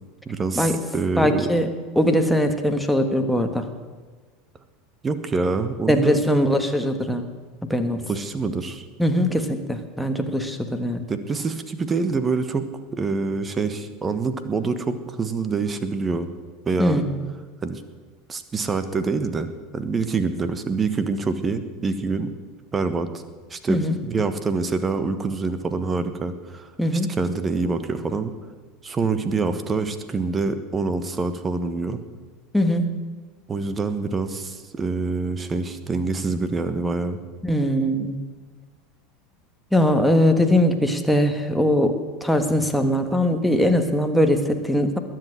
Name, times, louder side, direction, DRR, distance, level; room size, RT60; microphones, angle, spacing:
voice 1, 0.2-1.5 5.0-6.2 8.1-8.8 11.1-16.3 16.6-17.0 17.6-17.8 18.3-22.3 22.7-23.1 23.5-26.7 27.2-28.3 28.8-32.0 33.5-37.2, right 4 dB, 20° right, 11 dB, 1.3 m, -26 dB
voice 2, 1.2-3.7 5.9-7.3 7.7-8.0 9.0-11.0 16.8-17.2 23.7-24.0 26.8-27.2 32.5-33.0 37.4-38.2 39.7-41.9 42.2-45.0, equal, ahead, 5 dB, 1.5 m, -21 dB
21.0 x 7.8 x 7.6 m, 1.4 s
figure-of-eight pair, 75°, 0 cm